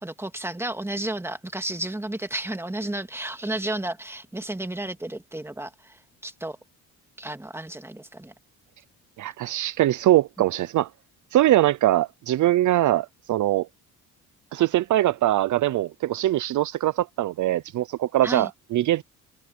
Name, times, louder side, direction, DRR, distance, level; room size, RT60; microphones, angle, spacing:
voice 1, 0.0-6.6 7.2-8.3 18.2-18.5, right 1 dB, 5° right, 2.1 m, -32 dB
voice 2, 9.2-10.9 11.3-13.7 14.5-19.0, right 14 dB, 60° right, 0.7 m, -22 dB
cardioid pair, 95°, 34 cm